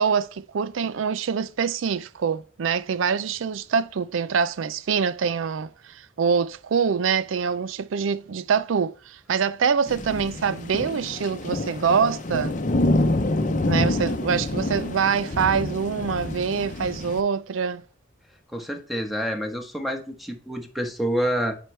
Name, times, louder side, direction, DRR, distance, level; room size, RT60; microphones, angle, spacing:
voice 1, 0.0-12.6 13.6-17.8, right 6 dB, 85° right, 0.4 m, -25 dB
sound 1, 9.9-17.2, left 2 dB, 40° left, 0.7 m, -27 dB
voice 2, 18.5-21.6, equal, ahead, 1.1 m, -28 dB
9.1 x 4.5 x 3.2 m
head